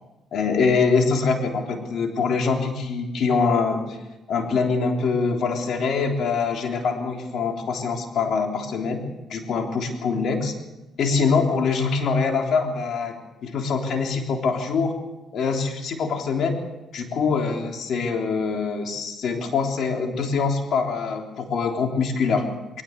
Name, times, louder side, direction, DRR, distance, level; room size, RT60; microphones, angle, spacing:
voice 1, 0.3-4.0 4.3-10.5 11.0-13.2 13.4-15.0 15.3-16.6 16.9-22.5, left 5 dB, 65° left, 3 dB, 3.5 m, -24 dB
21.5 x 18.5 x 8.1 m, 1.0 s
cardioid pair, 90°, 0 cm